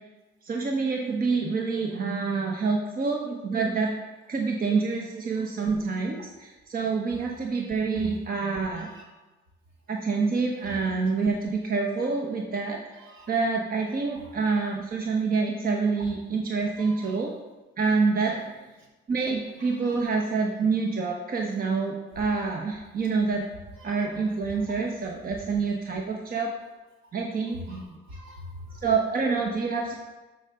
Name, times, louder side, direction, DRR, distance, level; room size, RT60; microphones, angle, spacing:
voice 1, 0.4-3.9 4.3-8.9 9.9-12.8 13.3-17.3 17.8-18.3 19.1-23.4 23.8-26.5 27.1-28.0 28.8-29.9, right 4 dB, 45° right, 1 dB, 1.1 m, -27 dB
voice 2, 8.7-9.1 13.0-13.3 16.8-17.2 18.3-18.4 19.3-20.0 22.1-22.2 23.8-24.1 27.7-28.8, equal, 80° right, -3 dB, 2.9 m, -46 dB
12.5 x 5.7 x 3.8 m, 1.1 s
cardioid pair, 90°, 20 cm